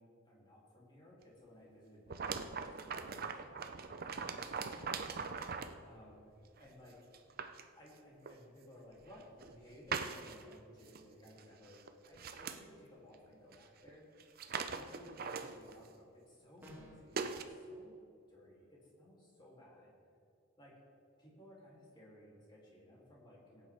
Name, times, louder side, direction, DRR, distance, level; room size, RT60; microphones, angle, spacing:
voice 1, 0.0-5.0 5.4-7.0 7.7-14.1 14.6-17.9 18.3-19.9 20.6-20.7 21.2-23.7, left 1 dB, 20° left, -5 dB, 2.9 m, -58 dB
sound 1, 2.1-5.8 6.6-6.7 7.1-7.6 8.3-8.4 9.1-9.6 9.9-10.5 10.9-11.0 11.3-11.4 11.7-12.6 13.5-13.6 13.9-14.0 14.2-15.9 16.6-16.8 17.2-17.4, right 5 dB, 50° right, 0.6 m, -41 dB
sound 2, 16.6-17.2, left 1 dB, 10° right, 1.6 m, -53 dB
17.5 x 8.9 x 3.5 m, 2.5 s
head